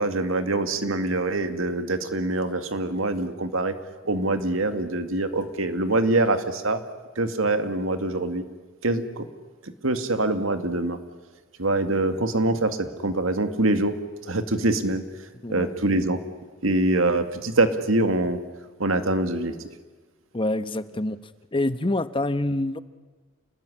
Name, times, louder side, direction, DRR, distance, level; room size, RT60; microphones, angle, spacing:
voice 1, 0.0-3.7 4.0-6.8 7.2-8.4 8.8-9.2 9.8-11.0 11.6-14.0 14.2-15.0 15.5-16.2 16.6-18.4 18.8-19.5, right 2 dB, 85° right, 9 dB, 2.2 m, -24 dB
voice 2, 15.4-15.8 20.3-21.2 21.5-22.8, left 2 dB, 25° left, 13 dB, 1.0 m, -26 dB
29.0 x 19.5 x 10.0 m, 1.4 s
head